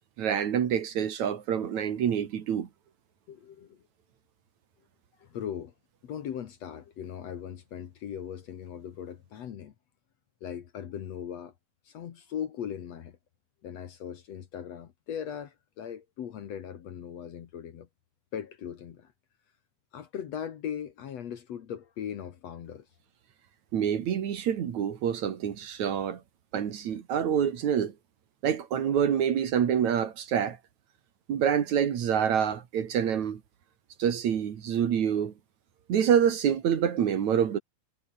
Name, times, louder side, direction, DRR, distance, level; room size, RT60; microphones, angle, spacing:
voice 1, 0.2-2.7 23.7-26.2 26.5-27.9 28.4-30.6 31.3-33.4 34.0-35.3 35.9-37.6, right 8 dB, 60° right, 3.0 m, -26 dB
voice 2, 3.3-3.8 5.2-5.7 6.0-9.7 10.4-11.5 11.9-13.2 13.6-17.9 18.3-19.1 19.9-22.9, left 9 dB, 55° left, 2.3 m, -39 dB
omnidirectional pair, 4.0 m